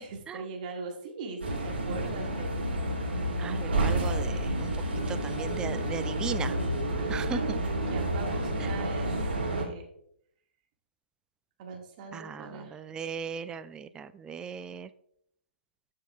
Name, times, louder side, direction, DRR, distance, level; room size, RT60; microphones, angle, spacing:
voice 1, 0.0-2.6 7.0-7.5 7.9-9.1 9.5-9.9 11.6-12.8, right 3 dB, 40° right, 2 dB, 1.7 m, -41 dB
sound 1, 1.4-9.6, right 1 dB, 70° right, 2.6 m, -30 dB
voice 2, 3.4-6.6 7.1-7.6 8.6-8.7 12.1-14.9, right 7 dB, 10° right, 13 dB, 0.3 m, -38 dB
12.0 x 5.6 x 2.3 m, 0.70 s
figure-of-eight pair, 125°, 6 cm